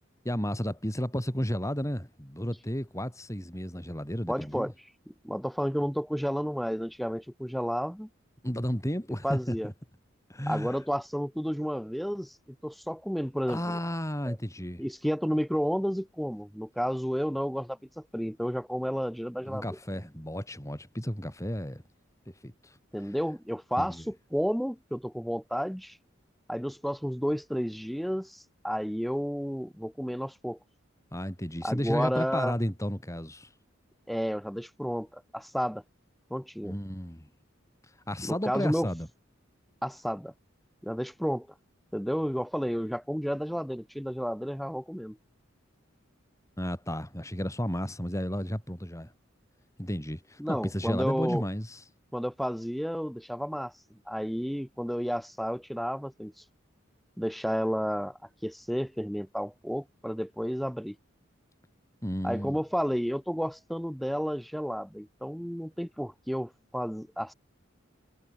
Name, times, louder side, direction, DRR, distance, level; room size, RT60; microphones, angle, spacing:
voice 1, 0.2-4.7 8.4-9.7 10.3-10.8 13.5-14.8 19.4-21.8 22.3-22.8 23.8-24.0 31.1-33.5 36.6-37.3 38.1-39.1 46.6-49.1 49.8-51.8 62.0-62.6, equal, 15° left, 7.1 m, -33 dB
voice 2, 4.3-4.7 5.1-8.1 9.2-9.7 10.5-13.8 14.3-14.4 14.8-19.8 22.9-26.0 26.5-30.6 31.6-32.5 34.1-35.8 36.3-36.8 38.2-38.9 39.8-40.3 40.8-41.5 41.9-45.2 50.4-51.4 52.1-53.7 54.1-56.3 57.2-61.0 62.2-67.3, equal, ahead, 5.0 m, -31 dB
head